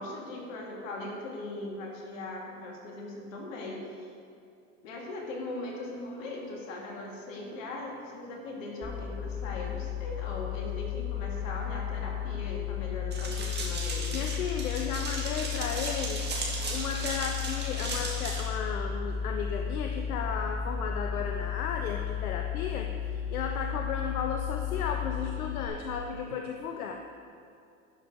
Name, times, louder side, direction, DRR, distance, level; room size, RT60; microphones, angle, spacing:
voice 1, 0.0-4.1 4.8-14.2, left 2 dB, 65° left, -1 dB, 2.0 m, -39 dB
sound 1, 8.8-25.7, left 9 dB, 30° left, 1.4 m, -34 dB
sound 2, 13.1-18.4, right 3 dB, 25° right, 1.8 m, -36 dB
voice 2, 14.1-16.2 16.7-27.0, left 6 dB, 85° left, 4 dB, 0.6 m, -34 dB
11.5 x 5.5 x 3.5 m, 2.4 s
hypercardioid pair, 90°, 42 cm